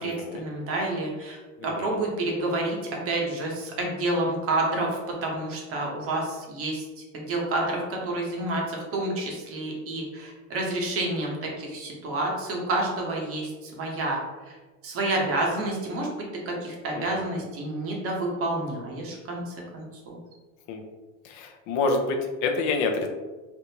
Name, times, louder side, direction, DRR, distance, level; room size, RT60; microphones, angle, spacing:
voice 1, 0.0-2.8 3.0-6.9 7.1-14.6 14.8-20.2, right 2 dB, 35° right, -1 dB, 0.8 m, -29 dB
voice 2, 1.6-2.0 16.9-17.4 20.7-20.8 21.2-23.1, left 3 dB, 50° left, 4 dB, 0.6 m, -28 dB
3.4 x 2.5 x 2.8 m, 1.2 s
cardioid pair, 145°, 38 cm